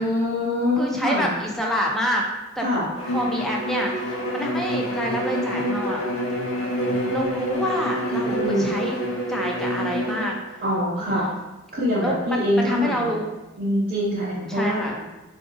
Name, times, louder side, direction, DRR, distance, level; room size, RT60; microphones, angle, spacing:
voice 1, 0.0-1.3 2.6-2.9 8.3-8.8 10.6-11.3 11.7-13.1 13.6-15.1, left 1 dB, 45° right, -8 dB, 0.6 m, -24 dB
voice 2, 0.8-2.3 2.6-6.0 7.1-9.0 9.3-10.4 11.0-11.4 12.0-13.3 14.5-14.9, equal, ahead, -1 dB, 0.4 m, -28 dB
Bowed string instrument, 3.0-10.4, equal, 80° left, 0.6 m, -27 dB
3.8 x 2.4 x 2.4 m, 1.1 s
head